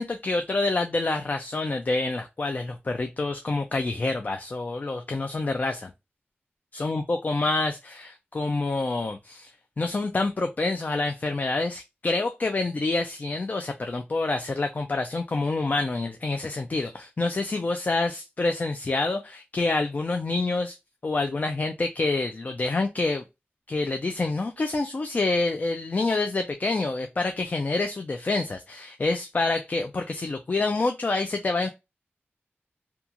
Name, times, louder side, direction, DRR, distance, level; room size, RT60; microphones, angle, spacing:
voice 1, 0.0-5.9 6.7-9.5 9.8-20.8 21.0-23.2 23.7-31.7, left 3 dB, 40° left, 0.3 m, -27 dB
2.9 x 2.3 x 2.4 m
wide cardioid pair, 100°, 4 cm